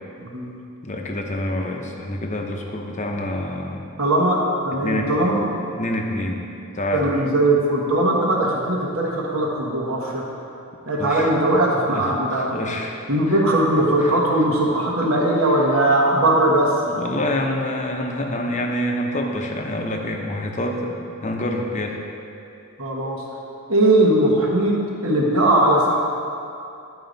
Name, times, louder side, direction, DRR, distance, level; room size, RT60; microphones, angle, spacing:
voice 1, 0.2-0.5 4.0-5.4 6.9-10.2 10.9-12.5 13.1-16.7 22.8-23.2 23.7-24.8 25.0-25.9, right 1 dB, 65° right, -3 dB, 1.2 m, -19 dB
voice 2, 0.8-3.9 4.8-6.4 6.7-7.2 11.0-11.3 11.9-13.0 14.0-14.1 15.0-15.1 15.4-15.5 16.8-22.0, left 1 dB, 35° left, 2 dB, 0.7 m, -27 dB
11.5 x 4.8 x 3.9 m, 2.7 s
head